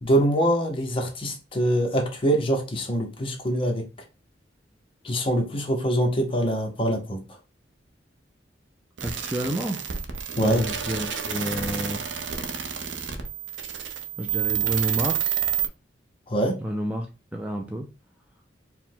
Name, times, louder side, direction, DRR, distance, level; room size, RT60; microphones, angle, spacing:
voice 1, 0.0-3.8 5.0-7.2 10.4-10.7 16.3-16.6, right 1 dB, 30° left, 0.8 m, -24 dB
voice 2, 9.0-9.8 10.4-12.3 14.2-15.4 16.6-17.1 17.3-17.9, equal, 5° right, 0.4 m, -30 dB
sound 1, 9.0-15.7, right 9 dB, 85° right, 0.6 m, -29 dB
4.6 x 2.2 x 3.7 m
head